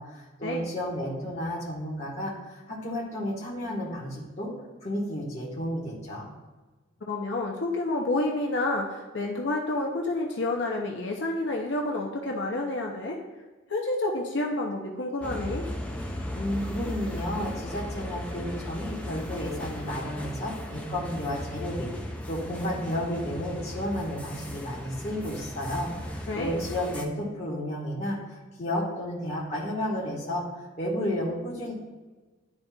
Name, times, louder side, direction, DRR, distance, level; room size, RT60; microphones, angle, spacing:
voice 1, 0.0-4.5 4.8-6.3 16.3-21.9 22.3-30.4 30.8-31.7, equal, 35° left, -7 dB, 1.3 m, -32 dB
voice 2, 7.1-13.2 13.7-15.6 26.3-26.6, left 2 dB, 60° left, 0 dB, 0.7 m, -29 dB
sound 1, 15.2-27.0, left 1 dB, 5° left, 0.5 m, -36 dB
10.5 x 4.1 x 2.3 m, 1.3 s
head